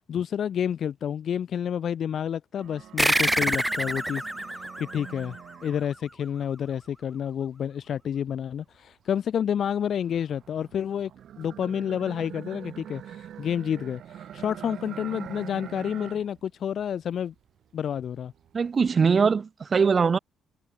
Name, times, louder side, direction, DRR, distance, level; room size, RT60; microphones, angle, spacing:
voice 1, 0.1-4.3 4.8-5.4 5.6-11.1 11.4-17.3 17.7-18.3, left 8 dB, 60° left, 0.7 m, -29 dB
sound 1, 2.6-6.2 6.7-8.9 9.5-16.4 16.7-17.5 17.9-18.9, right 10 dB, 65° right, 6.1 m, -44 dB
sound 2, 3.0-6.0, right 1 dB, 5° right, 0.9 m, -27 dB
voice 2, 18.5-20.2, right 5 dB, 40° right, 0.8 m, -21 dB
cardioid pair, 90°, 0 cm